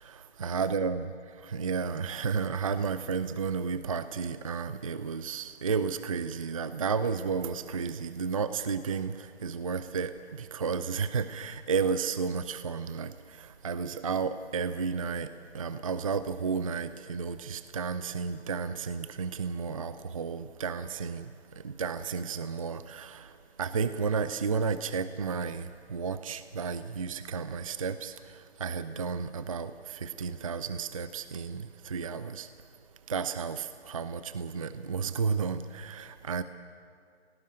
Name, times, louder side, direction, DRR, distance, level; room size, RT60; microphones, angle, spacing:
voice 1, 0.0-1.1 1.4-32.5 33.1-36.4, right 5 dB, 30° right, 12 dB, 0.5 m, -32 dB
18.0 x 17.5 x 8.9 m, 2.2 s
figure-of-eight pair, 145°, 34 cm